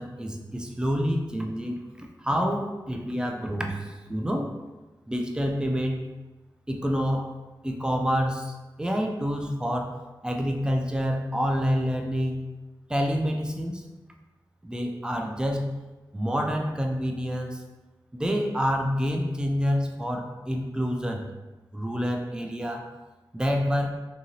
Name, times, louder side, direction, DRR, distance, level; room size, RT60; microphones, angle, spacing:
voice 1, 0.0-4.5 5.1-6.0 6.7-7.3 7.6-10.0 10.2-12.4 12.9-13.9 14.6-15.7 16.1-17.6 18.1-21.3 21.7-22.9 23.3-23.9, equal, 10° right, 2 dB, 0.4 m, -28 dB
2.7 x 2.6 x 2.9 m, 1.1 s
wide cardioid pair, 85°, 8 cm